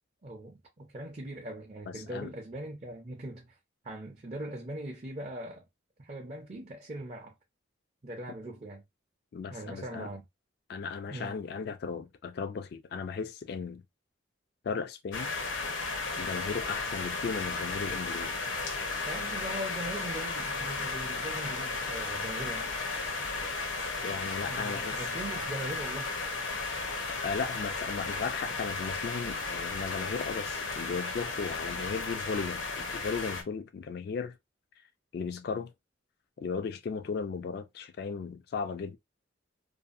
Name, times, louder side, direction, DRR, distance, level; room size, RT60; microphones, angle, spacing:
voice 1, 0.2-3.6 3.8-5.6 6.0-7.3 8.0-8.8 9.5-10.3 11.1-11.4 19.1-22.7 24.5-26.2, right 1 dB, 35° right, 0.5 m, -40 dB
voice 2, 1.9-2.3 9.3-10.1 10.7-13.8 14.6-15.3 16.1-18.3 24.0-25.0 27.2-34.3 35.1-35.7 36.4-39.0, left 5 dB, 55° left, 0.3 m, -36 dB
sound 1, 15.1-33.4, left 3 dB, 75° left, 0.7 m, -34 dB
2.6 x 2.3 x 2.4 m
head